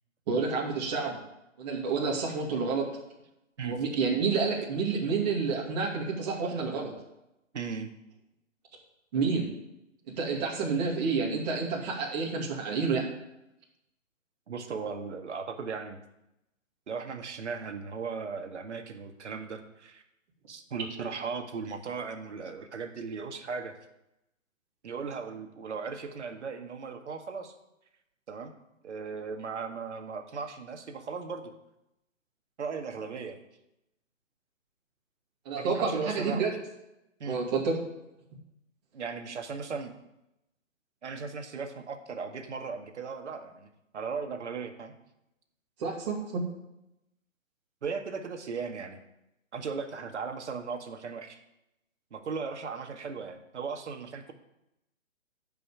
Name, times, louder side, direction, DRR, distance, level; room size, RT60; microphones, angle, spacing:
voice 1, 0.3-1.2 1.6-2.9 3.6-6.9 9.1-9.5 10.1-13.1 35.5-36.5 37.3-37.8 45.8-46.4, right 4 dB, 30° right, -3 dB, 2.5 m, -29 dB
voice 2, 7.5-7.9 14.5-16.0 16.9-20.0 20.5-23.7 24.8-27.5 28.3-28.5 28.8-31.5 32.6-33.4 35.5-36.4 37.2-37.4 38.9-39.9 41.0-43.7 43.9-44.9 47.8-49.0 49.5-51.4 52.1-54.3, right 5 dB, 60° right, 5 dB, 1.9 m, -37 dB
10.5 x 5.7 x 8.5 m, 0.88 s
hypercardioid pair, 155°, 39 cm